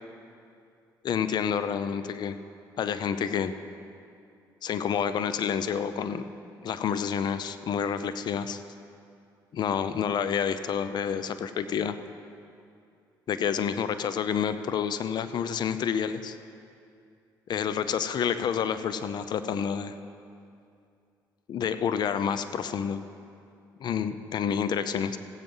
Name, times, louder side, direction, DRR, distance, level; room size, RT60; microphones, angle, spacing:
voice 1, 1.0-2.4 2.8-3.5 4.6-6.2 6.6-8.6 9.5-12.0 13.3-16.4 17.5-20.0 21.5-23.0 23.8-25.2, left 7 dB, 60° left, 11 dB, 0.6 m, -29 dB
16.5 x 7.9 x 5.5 m, 2.5 s
supercardioid pair, 70°, 8 cm